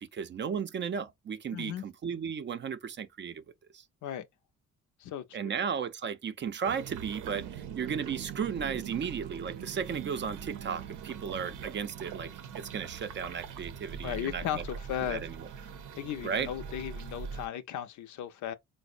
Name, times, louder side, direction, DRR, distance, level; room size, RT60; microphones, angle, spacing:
voice 1, 0.0-3.4 3.7-3.8 5.3-12.3 12.5-14.6 15.0-15.5 16.2-16.5, right 7 dB, 40° right, 0.4 m, -35 dB
voice 2, 1.5-1.8 4.0-4.3 5.0-5.5 14.0-15.2 16.0-18.5, left 10 dB, 70° left, 0.6 m, -36 dB
sound 1, 6.6-17.5, right 7 dB, 85° right, 0.6 m, -42 dB
4.1 x 2.0 x 2.4 m
cardioid pair, 90°, 30 cm